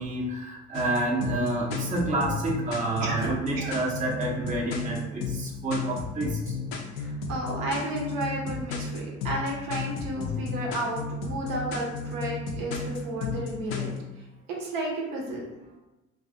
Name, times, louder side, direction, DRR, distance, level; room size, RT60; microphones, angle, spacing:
voice 1, 0.0-6.6, right 2 dB, 20° right, -2 dB, 0.6 m, -29 dB
sound 1, 0.7-14.0, left 5 dB, 65° left, 0.5 m, -33 dB
voice 2, 6.9-13.9 14.6-15.4, right 1 dB, 60° right, -1 dB, 0.7 m, -32 dB
2.3 x 2.3 x 2.6 m, 1.0 s
figure-of-eight pair, 45°, 40 cm